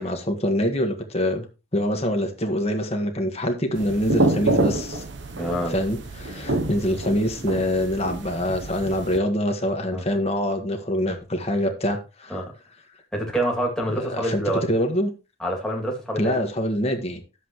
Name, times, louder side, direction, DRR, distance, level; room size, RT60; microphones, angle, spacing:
voice 1, 0.0-1.4 1.7-5.0 5.7-12.4 13.9-14.4 14.7-15.1 16.2-17.2, equal, 30° left, 1.5 m, -25 dB
sound 1, 3.7-9.2, right 2 dB, 60° right, 0.9 m, -27 dB
voice 2, 5.3-5.7 9.9-10.0 12.3-12.5 13.1-14.6 15.4-16.4, right 1 dB, 5° left, 2.4 m, -26 dB
11.5 x 7.3 x 3.1 m
head